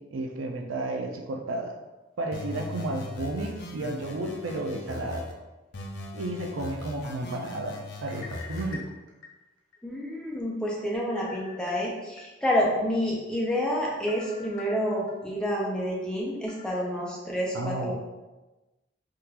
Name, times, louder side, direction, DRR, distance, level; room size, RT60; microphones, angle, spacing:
voice 1, 0.0-1.8 2.2-5.3 6.1-8.9 17.5-17.9, right 2 dB, 85° right, 3 dB, 0.4 m, -32 dB
sound 1, 2.3-5.3 5.7-8.8, left 2 dB, 55° left, 0.5 m, -39 dB
sound 2, 8.0-9.8 10.2-10.3 11.2-12.2 12.7-12.8 14.1-15.1 15.6-15.7 16.5-16.7, left 4 dB, 85° left, 0.8 m, -45 dB
voice 2, 9.8-17.9, equal, 5° left, -4 dB, 0.5 m, -28 dB
3.6 x 2.4 x 2.8 m, 1.1 s
head